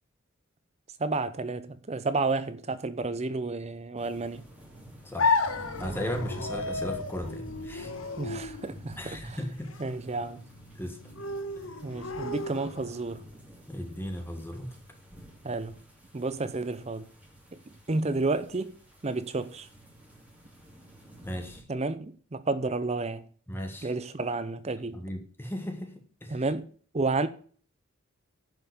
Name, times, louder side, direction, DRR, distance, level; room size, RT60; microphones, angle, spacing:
voice 1, 1.0-4.4 8.2-9.4 9.8-10.4 11.8-13.2 15.4-15.8 16.1-17.1 17.5-18.8 19.0-19.7 21.7-23.2 23.8-25.0 26.3-27.3, right 3 dB, 30° right, 0.6 m, -31 dB
sound 1, 4.0-21.6, equal, 5° right, 2.9 m, -48 dB
voice 2, 5.1-5.4 5.8-7.9 9.0-9.8 10.8-11.0 13.7-14.7 21.2-21.6 23.5-23.9 24.9-26.4, left 1 dB, 10° left, 1.7 m, -36 dB
sound 2, 5.2-13.1, left 3 dB, 70° left, 1.2 m, -33 dB
10.5 x 5.7 x 6.7 m
head